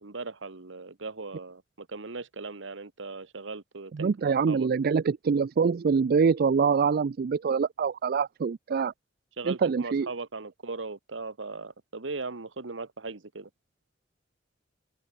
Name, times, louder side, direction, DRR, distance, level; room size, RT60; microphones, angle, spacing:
voice 1, 0.0-4.7 9.4-13.5, right 3 dB, 70° right, 1.3 m, -38 dB
voice 2, 3.9-8.9 9.4-10.1, right 5 dB, 50° right, 0.4 m, -25 dB
open air
head